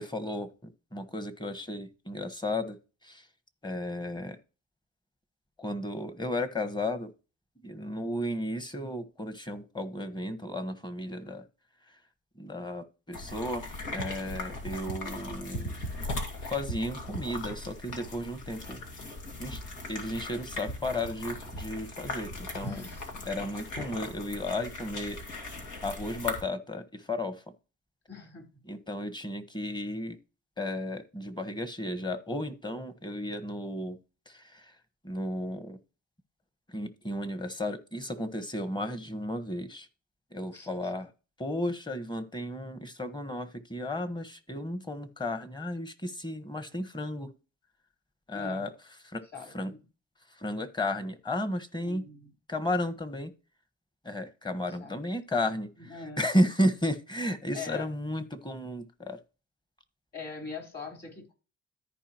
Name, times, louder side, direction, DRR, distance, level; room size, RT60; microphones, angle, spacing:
voice 1, 0.0-3.3 3.6-4.4 5.6-7.1 7.6-11.5 11.8-12.0 12.3-13.6 13.9-15.7 16.4-18.8 19.4-19.6 19.9-22.9 23.2-25.2 25.8-27.4 28.6-30.2 30.6-34.0 34.3-34.8 35.0-35.8 36.7-39.9 40.3-41.1 41.4-47.3 48.3-48.7 49.0-49.2 49.5-49.7 50.3-52.0 52.5-53.3 54.0-59.2, left 1 dB, 15° left, 11 dB, 1.3 m, -33 dB
sound 1, 13.1-26.4, left 2 dB, 85° left, 2.4 m, -38 dB
voice 2, 22.6-23.2 28.1-28.5 40.5-40.7 48.3-48.6 49.3-49.8 51.8-52.3 54.8-55.0 55.8-56.3 57.5-57.9 60.1-61.3, left 4 dB, 35° left, 3 dB, 4.1 m, -42 dB
14.0 x 4.8 x 3.0 m, 0.33 s
cardioid pair, 90°, 30 cm